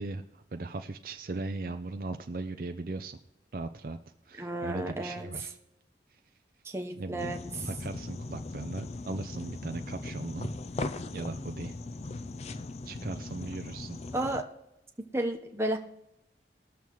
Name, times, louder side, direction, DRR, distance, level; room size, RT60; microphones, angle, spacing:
voice 1, 0.0-3.2 3.5-4.0 4.3-5.5 7.0-7.4 7.6-10.5 11.1-11.8 12.9-14.0, right 3 dB, 50° right, 7 dB, 0.5 m, -38 dB
voice 2, 4.4-5.5 6.6-7.7 14.1-14.4 15.1-15.8, right 1 dB, 15° right, 3 dB, 0.9 m, -33 dB
sound 1, 7.2-14.4, left 2 dB, 35° left, 0.4 m, -39 dB
21.0 x 7.1 x 3.1 m, 0.89 s
head